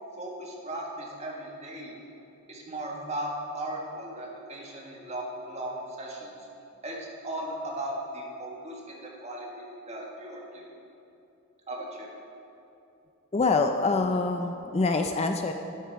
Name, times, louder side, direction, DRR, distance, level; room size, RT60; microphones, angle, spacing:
voice 1, 0.2-1.9 2.5-6.3 6.8-10.6 11.7-12.1, right 1 dB, 30° right, -2 dB, 1.7 m, -37 dB
voice 2, 13.3-15.5, left 3 dB, 30° left, 5 dB, 0.4 m, -25 dB
12.0 x 8.9 x 4.7 m, 2.8 s
head